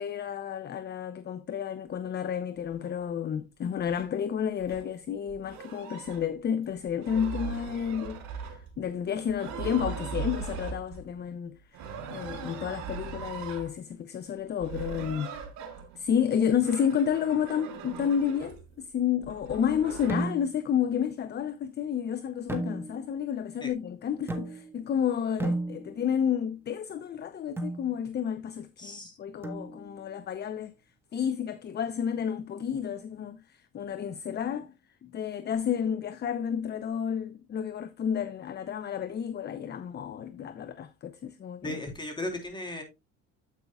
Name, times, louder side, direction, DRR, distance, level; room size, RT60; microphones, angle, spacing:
voice 1, 0.0-15.3 16.0-30.7 31.1-34.7 35.0-41.8, left 8 dB, 35° left, 0.6 m, -31 dB
sound 1, 2.8-2.9 3.9-4.1 4.6-4.9 5.3-6.3 6.9-8.9 9.3-11.1 11.7-13.7 14.6-16.1 16.5-18.7 19.2-20.2, right 6 dB, 70° right, 3.3 m, -39 dB
sound 2, 20.1-20.7 22.5-23.2 24.3-24.9 25.4-26.2 27.6-27.9 29.4-30.0, right 2 dB, 10° right, 1.6 m, -34 dB
voice 2, 28.8-29.1 41.6-42.8, left 1 dB, 15° left, 3.4 m, -36 dB
9.1 x 8.3 x 2.3 m
supercardioid pair, 95°, 30 cm